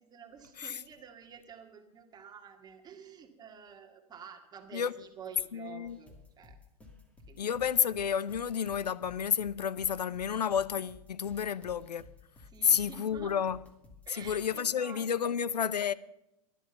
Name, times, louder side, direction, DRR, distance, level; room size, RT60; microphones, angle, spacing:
voice 1, 0.0-6.6 7.3-7.6 11.3-11.4 12.5-13.4 14.1-15.4, right 7 dB, 20° right, 1.9 m, -50 dB
voice 2, 5.5-6.0 7.4-12.0 12.6-13.6 14.1-15.9, left 8 dB, 90° left, 0.6 m, -30 dB
sound 1, 5.8-14.5, left 3 dB, 5° left, 2.4 m, -55 dB
12.0 x 11.0 x 6.8 m
hypercardioid pair, 115°, 20 cm